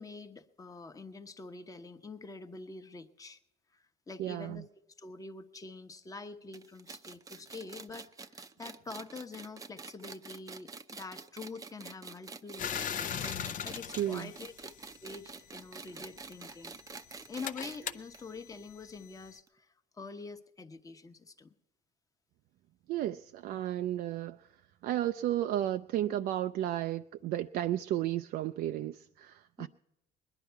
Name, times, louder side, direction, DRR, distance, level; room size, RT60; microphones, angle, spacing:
voice 1, 0.0-3.4 3.7-4.6 5.0-13.3 13.6-14.5 15.0-16.8 17.3-19.7 19.9-21.5 29.6-29.7, left 3 dB, 20° left, 1.0 m, -46 dB
voice 2, 4.2-4.6 14.0-14.3 22.9-24.5 24.8-29.7, right 12 dB, 65° right, 0.4 m, -33 dB
sound 1, 6.5-17.8 18.1-18.2 18.5-18.6 19.5-19.6, right 4 dB, 20° right, 0.6 m, -47 dB
sound 2, 12.6-15.2 16.1-19.4, left 9 dB, 50° left, 0.6 m, -40 dB
20.5 x 11.0 x 4.6 m
cardioid pair, 110°, 17 cm